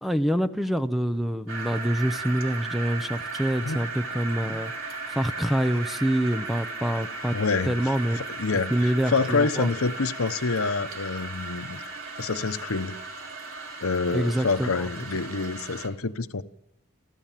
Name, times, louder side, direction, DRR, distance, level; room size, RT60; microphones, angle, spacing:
voice 1, 0.0-7.3 7.6-8.2 8.7-9.7 14.1-14.8, right 1 dB, ahead, 0.7 m, -26 dB
sound 1, 1.5-15.9, right 3 dB, 70° right, 3.3 m, -36 dB
voice 2, 7.3-11.8 12.2-13.0 13.8-16.4, left 4 dB, 80° left, 0.9 m, -27 dB
29.5 x 12.0 x 7.5 m
head